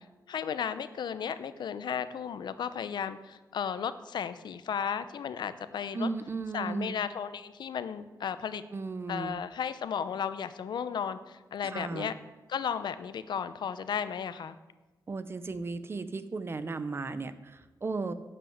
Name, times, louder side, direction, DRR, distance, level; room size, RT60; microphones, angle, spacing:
voice 1, 0.3-6.1 6.5-8.6 9.1-12.1 12.5-14.6, left 7 dB, 80° left, 13 dB, 0.7 m, -34 dB
voice 2, 5.9-6.9 8.7-9.4 11.6-12.1 15.1-18.1, right 3 dB, 35° right, 13 dB, 0.7 m, -35 dB
11.0 x 7.6 x 7.9 m, 1.1 s
wide cardioid pair, 130°, 7 cm